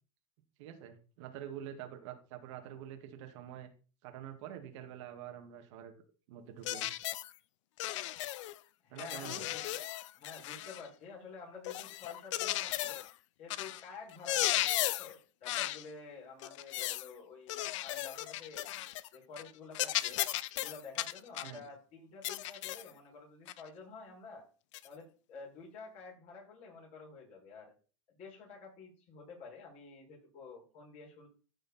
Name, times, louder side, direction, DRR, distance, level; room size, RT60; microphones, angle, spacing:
voice 1, 0.6-3.7 4.0-5.9 6.3-6.9 8.9-9.5 21.4-21.6, right 10 dB, 70° right, 6 dB, 2.1 m, -46 dB
sound 1, 6.6-7.3 7.8-8.6 9.0-10.9 11.6-13.1 13.5-13.8 14.1-15.1 15.4-15.8 16.4-17.1 17.5-19.1 19.4-19.5 19.7-21.6 22.2-22.9 23.5-23.6 24.7-24.9, left 15 dB, 75° left, 0.6 m, -36 dB
voice 2, 8.8-9.8 10.1-13.0 13.4-18.7 19.1-20.2 20.5-24.4 24.8-27.7 28.1-31.3, left 4 dB, 45° left, -3 dB, 6.2 m, -50 dB
14.0 x 5.1 x 4.3 m, 0.37 s
supercardioid pair, 120°, 16 cm